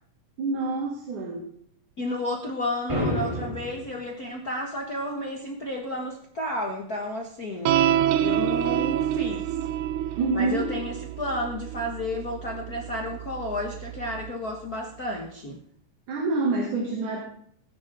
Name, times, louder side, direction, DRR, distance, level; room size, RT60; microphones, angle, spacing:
voice 1, 0.4-1.5 10.2-10.7 16.1-17.2, right 3 dB, 60° right, 0 dB, 3.5 m, -27 dB
voice 2, 2.0-7.9 8.2-9.6 10.1-15.6, left 1 dB, 65° left, 0 dB, 0.9 m, -32 dB
sound 1, 2.9-3.9, left 1 dB, 10° right, 2.7 m, -28 dB
sound 2, 7.6-14.3, right 11 dB, 85° right, 1.7 m, -27 dB
18.5 x 10.0 x 3.6 m, 0.62 s
omnidirectional pair, 4.1 m